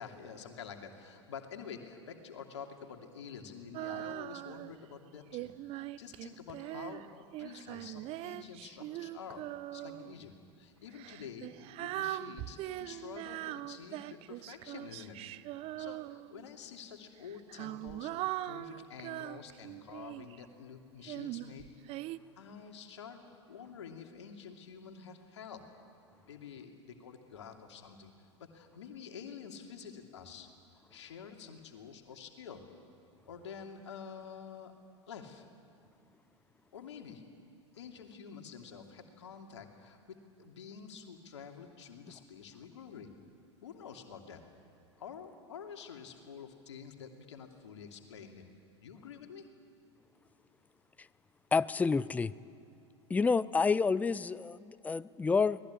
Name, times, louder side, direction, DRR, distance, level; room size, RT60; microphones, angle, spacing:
voice 1, 0.0-10.3 10.6-15.2 15.8-22.0 22.4-23.2 23.5-25.7 26.3-30.5 30.9-32.6 33.3-34.7 35.1-35.5 36.7-37.2 37.7-43.1 43.6-44.4 45.0-48.4 48.8-49.5, left 6 dB, 70° left, 4 dB, 2.7 m, -48 dB
Female singing, 3.7-4.8 5.3-10.1 10.9-16.5 17.2-20.4 21.1-22.2, right 15 dB, 40° right, 0.7 m, -41 dB
voice 2, 51.5-52.3 53.1-55.6, left 4 dB, 10° left, 18 dB, 0.5 m, -29 dB
25.0 x 19.0 x 9.8 m, 2.6 s
figure-of-eight pair, 85°, 15 cm